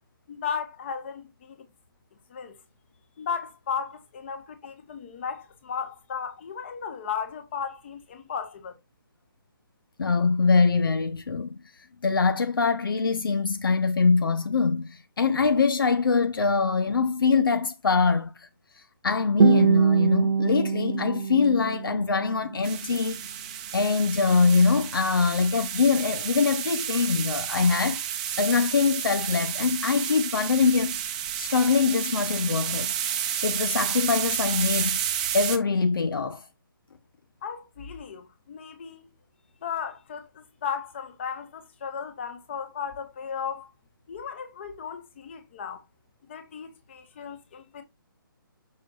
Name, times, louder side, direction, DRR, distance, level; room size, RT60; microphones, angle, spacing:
voice 1, 0.3-1.7 2.3-2.6 3.2-8.7 37.4-39.0 39.6-43.7 44.1-45.8 46.3-47.8, left 7 dB, 30° left, 1.7 m, -35 dB
voice 2, 10.0-11.6 12.0-18.5 19.0-23.2 23.7-28.0 28.4-31.0 31.4-32.9 33.4-35.0 35.3-36.4, left 4 dB, 70° left, 1.0 m, -23 dB
Guitar, 19.4-22.4, right 6 dB, 80° right, 0.5 m, -23 dB
sound 1, 22.6-35.6, right 9 dB, 20° right, 0.8 m, -31 dB
6.7 x 6.5 x 2.5 m
hypercardioid pair, 170°, 12 cm